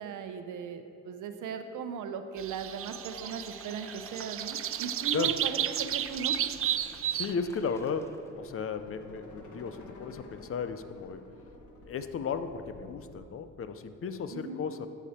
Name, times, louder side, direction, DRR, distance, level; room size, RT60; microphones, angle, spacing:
voice 1, 0.0-6.4 14.3-14.6, right 6 dB, 90° right, 8 dB, 0.8 m, -38 dB
sound 1, 2.4-8.3, left 1 dB, 10° left, 0.9 m, -52 dB
sound 2, 2.4-7.3, right 11 dB, 50° right, 0.4 m, -32 dB
sound 3, 5.0-13.2, left 2 dB, 75° left, 1.6 m, -52 dB
voice 2, 7.1-11.2 11.9-14.9, left 5 dB, 50° left, 10 dB, 0.6 m, -35 dB
13.0 x 7.0 x 4.3 m, 2.6 s
cardioid pair, 110°, 30 cm